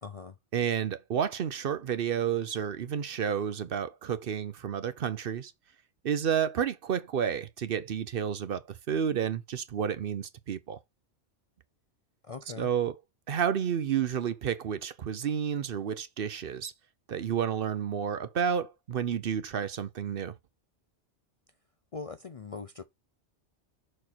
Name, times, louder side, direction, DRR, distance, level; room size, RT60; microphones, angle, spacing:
voice 1, 0.0-0.4 12.2-12.7 21.9-22.8, left 4 dB, 45° left, 0.5 m, -41 dB
voice 2, 0.5-5.5 6.0-10.8 12.6-12.9 13.3-16.7 17.1-20.3, right 8 dB, 60° right, 0.8 m, -30 dB
6.5 x 4.4 x 4.2 m
omnidirectional pair, 1.2 m